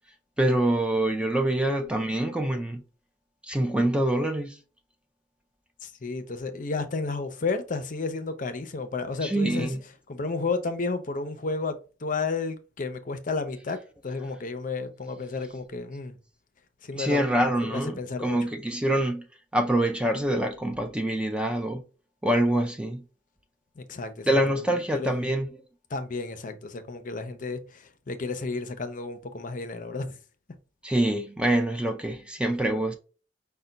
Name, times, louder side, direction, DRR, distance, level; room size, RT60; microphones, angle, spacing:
voice 1, 0.4-2.8 3.5-4.6 9.2-9.8 16.9-19.3 19.5-21.8 22.2-23.0 24.3-25.5 30.8-32.9, right 1 dB, 5° right, 0.4 m, -25 dB
voice 2, 5.8-9.7 10.1-16.2 16.8-17.2 17.6-18.4 23.8-24.4 24.9-25.3 25.9-30.2, left 3 dB, 45° left, 0.6 m, -32 dB
5.5 x 2.2 x 3.9 m
head